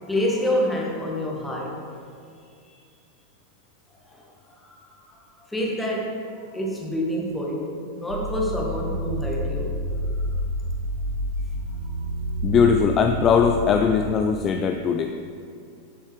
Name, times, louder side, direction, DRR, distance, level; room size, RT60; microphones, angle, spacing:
voice 1, 0.0-1.9 4.0-4.3 4.6-4.8 5.1-9.8 11.8-12.0, equal, 5° left, -2 dB, 1.7 m, -28 dB
sound 1, 8.1-14.1, equal, 60° right, 0.8 m, -29 dB
voice 2, 12.4-15.2, left 6 dB, 30° left, 5 dB, 0.4 m, -20 dB
11.0 x 7.2 x 3.4 m, 2.3 s
figure-of-eight pair, 90°, 0 cm